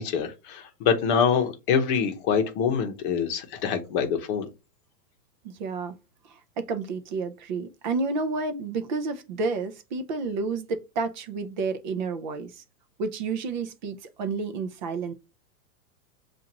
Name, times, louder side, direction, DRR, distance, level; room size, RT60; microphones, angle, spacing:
voice 1, 0.0-4.5, left 7 dB, 35° left, 0.9 m, -25 dB
voice 2, 5.4-5.9 6.6-12.6 13.0-15.1, right 4 dB, 30° right, 0.4 m, -30 dB
7.2 x 2.6 x 2.9 m
supercardioid pair, 155°, 47 cm